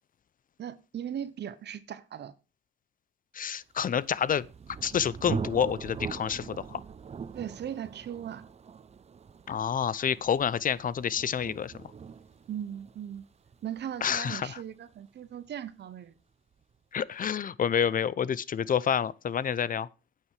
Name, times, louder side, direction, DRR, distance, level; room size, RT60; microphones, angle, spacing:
voice 1, 0.6-2.3 7.3-8.5 12.5-13.2 13.6-16.1, right 9 dB, 60° right, 1.1 m, -38 dB
voice 2, 3.3-4.5 4.8-6.8 9.5-11.7 14.0-14.5 16.9-19.9, left 8 dB, 45° left, 0.7 m, -28 dB
Thunder, 3.9-15.5, right 6 dB, 35° right, 0.7 m, -42 dB
9.4 x 8.8 x 4.8 m
cardioid pair, 90°, 20 cm